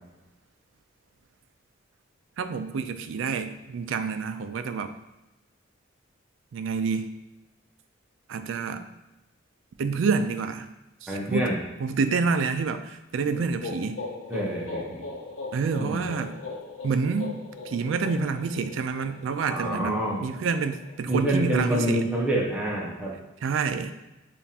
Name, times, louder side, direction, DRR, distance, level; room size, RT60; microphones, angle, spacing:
voice 1, 2.4-4.9 6.5-7.1 8.3-8.8 9.8-10.7 11.0-14.0 15.5-16.4 16.8-22.0 23.4-23.9, right 5 dB, 75° right, 9 dB, 0.3 m, -28 dB
voice 2, 11.1-11.6 14.3-15.0 15.8-16.0 19.5-20.2 21.1-23.1, right 1 dB, 5° right, -4 dB, 0.8 m, -27 dB
sound 1, 13.3-21.0, left 3 dB, 85° left, 0.6 m, -39 dB
6.9 x 2.5 x 2.8 m, 0.99 s
head